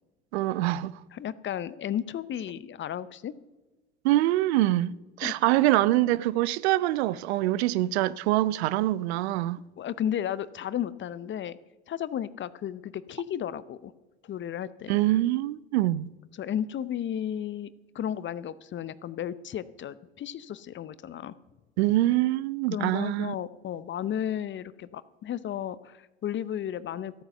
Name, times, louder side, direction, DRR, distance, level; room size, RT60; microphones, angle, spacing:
voice 1, 0.3-0.9 4.0-9.6 14.9-16.1 21.8-23.3, right 16 dB, 75° right, 0.5 m, -25 dB
voice 2, 1.1-3.3 5.2-5.3 9.8-11.6 11.9-13.9 14.2-15.0 16.4-17.7 17.9-21.3 22.7-27.1, left 10 dB, 35° left, 0.6 m, -33 dB
13.5 x 8.8 x 6.7 m
hypercardioid pair, 70°, 32 cm